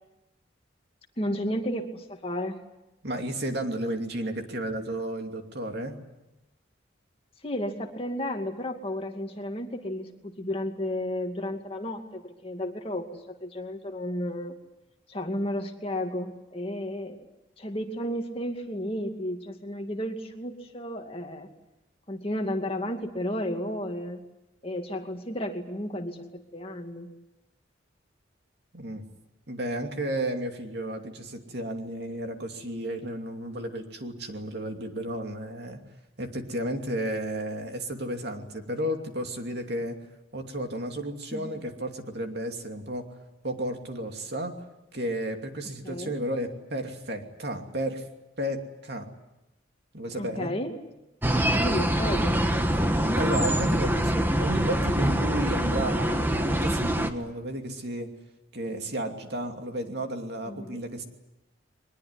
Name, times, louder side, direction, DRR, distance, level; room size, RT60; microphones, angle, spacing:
voice 1, 1.2-2.6 7.4-14.6 15.1-17.2 17.6-21.5 22.1-24.2 24.6-27.1 41.3-41.5 45.8-46.1 50.2-50.7 51.5-52.4 60.5-60.8, equal, 30° left, 3 dB, 2.4 m, -33 dB
voice 2, 3.0-5.9 28.7-29.0 29.5-35.8 36.2-40.0 40.3-43.1 43.4-44.6 44.9-48.0 48.4-49.1 49.9-50.5 53.1-58.1 58.5-61.0, right 1 dB, 55° right, 4 dB, 2.8 m, -33 dB
sound 1, 51.2-57.1, equal, 10° right, 1.4 m, -24 dB
22.5 x 21.5 x 9.8 m, 0.94 s
head